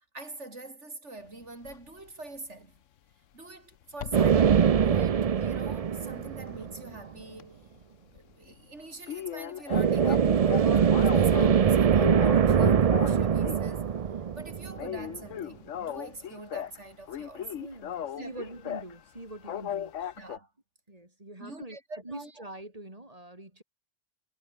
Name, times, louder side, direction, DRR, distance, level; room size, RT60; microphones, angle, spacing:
voice 1, 0.1-2.7 3.3-7.6 8.1-13.9 14.4-17.5 18.2-18.5 20.2-20.5 21.4-22.3, right 2 dB, 65° right, 4.4 m, -44 dB
sound 1, 1.6-1.8 3.9-4.4 4.8-7.0 7.3-7.4 7.8-7.9 8.2-8.3 8.5-8.6 9.1-11.6 12.0-13.7 14.1-14.4 14.7-16.8 17.1-18.9 19.4-20.4, left 10 dB, 75° left, 1.2 m, -37 dB
sound 2, 4.1-6.9 9.7-15.1, right 7 dB, 45° right, 0.4 m, -23 dB
voice 2, 17.5-20.2 20.9-23.6, right 1 dB, 30° right, 3.9 m, -44 dB
omnidirectional pair, 1.3 m